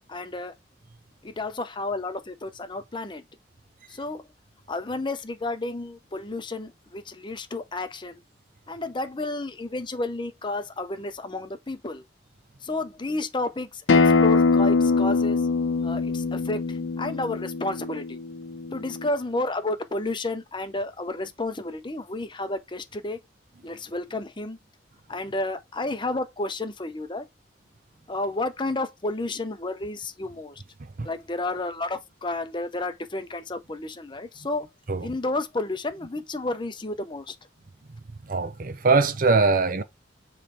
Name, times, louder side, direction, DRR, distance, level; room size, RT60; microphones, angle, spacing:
voice 1, 0.1-0.5 1.2-3.2 3.9-4.2 4.7-8.2 8.7-12.0 12.6-15.4 15.8-18.2 18.7-23.2 23.6-24.6 25.1-27.3 28.1-30.6 31.0-34.7 35.0-37.3, left 2 dB, 25° left, 0.7 m, -31 dB
Acoustic guitar, 13.9-19.1, left 4 dB, 90° left, 0.8 m, -23 dB
voice 2, 38.3-39.8, right 4 dB, 50° right, 0.7 m, -22 dB
7.4 x 3.3 x 4.3 m
head